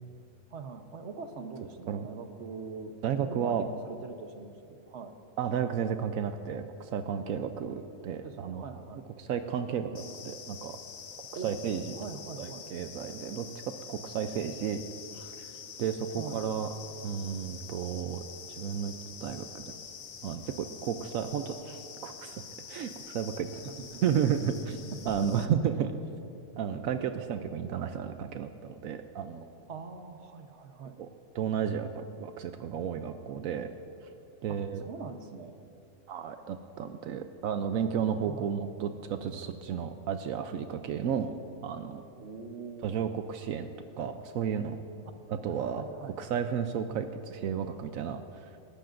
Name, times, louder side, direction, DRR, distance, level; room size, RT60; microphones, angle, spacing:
voice 1, 0.5-5.1 8.2-9.0 11.4-11.5 11.9-12.7 16.2-16.4 23.5-24.0 24.9-25.5 25.7-25.9 29.7-31.0 34.5-35.6 38.2-38.5 42.2-43.0 45.5-46.1, right 5 dB, 60° right, 6 dB, 1.2 m, -43 dB
voice 2, 3.0-3.7 5.4-8.6 9.2-10.7 11.4-11.8 12.4-13.5 13.9-14.8 15.1-15.5 15.8-16.7 17.0-18.2 18.6-18.9 19.2-19.7 20.2-22.4 22.7-23.6 24.0-24.7 25.1-25.9 26.6-29.5 31.0-31.1 31.3-33.7 34.4-34.8 36.1-41.3 41.6-42.0 42.8-43.7 44.0-44.8 45.3-48.5, right 8 dB, 85° right, 7 dB, 1.0 m, -32 dB
sound 1, 10.0-25.5, left 6 dB, 80° left, 1.2 m, -46 dB
28.0 x 13.5 x 2.6 m, 2.7 s
omnidirectional pair, 1.4 m